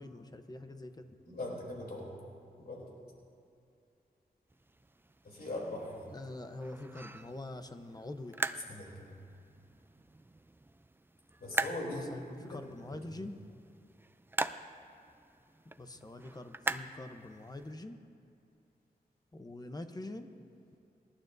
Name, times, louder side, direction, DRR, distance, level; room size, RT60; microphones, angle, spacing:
voice 1, 0.0-1.1 6.1-8.4 8.7-8.8 11.9-13.3 15.6-18.0 19.3-20.3, left 2 dB, 25° left, 7 dB, 0.9 m, -44 dB
voice 2, 1.3-2.1 2.6-2.9 5.2-6.1 8.7-9.1 11.4-12.1 13.1-13.2, left 1 dB, 70° left, -3 dB, 3.4 m, -40 dB
sound 1, 4.5-17.7, right 2 dB, 15° right, 0.4 m, -42 dB
26.5 x 11.5 x 2.7 m, 2.5 s
wide cardioid pair, 75°, 16 cm